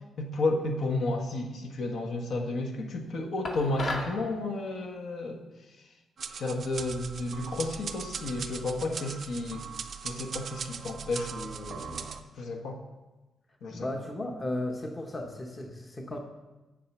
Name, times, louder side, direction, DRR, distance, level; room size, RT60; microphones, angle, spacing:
voice 1, 0.2-5.4 6.3-9.6 10.0-12.1 12.4-12.8 13.6-13.9, left 2 dB, 60° left, 3 dB, 1.2 m, -32 dB
sound 1, 3.4-4.2, left 2 dB, 45° left, 1.4 m, -33 dB
sound 2, 6.2-12.2, right 6 dB, 45° right, 0.5 m, -39 dB
voice 2, 13.7-16.2, left 1 dB, 20° left, 3 dB, 0.9 m, -35 dB
7.9 x 7.5 x 6.0 m, 1.1 s
cardioid pair, 145°, 0 cm